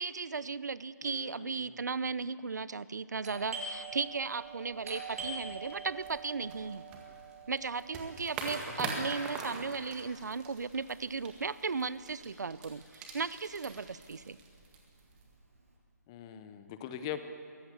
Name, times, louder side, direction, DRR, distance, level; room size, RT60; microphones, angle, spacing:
voice 1, 0.0-6.8 7.5-14.4, right 4 dB, 75° right, 17 dB, 0.8 m, -36 dB
voice 2, 1.0-1.7 8.8-8.9 16.1-17.2, left 10 dB, 15° left, 10 dB, 0.7 m, -42 dB
Doorbell, 3.2-12.6 12.8-12.9 13.6-13.9 14.2-15.6, right 3 dB, 50° right, 6.6 m, -46 dB
sound 1, 5.1-15.3, right 3 dB, 10° right, 1.8 m, -44 dB
22.5 x 18.0 x 8.2 m, 2.4 s
hypercardioid pair, 170°, 10 cm